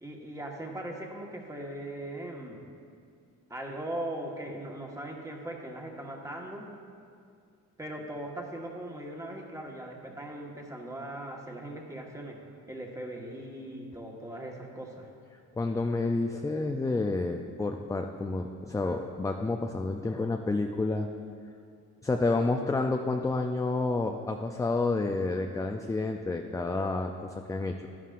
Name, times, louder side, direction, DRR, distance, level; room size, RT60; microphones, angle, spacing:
voice 1, 0.0-2.6 3.5-6.7 7.8-12.4 12.7-15.1, right 1 dB, 10° right, 0 dB, 1.4 m, -39 dB
voice 2, 15.6-21.1 22.0-27.8, left 3 dB, 10° left, 4 dB, 0.4 m, -29 dB
11.5 x 11.0 x 2.5 m, 2.3 s
cardioid pair, 90°, 30 cm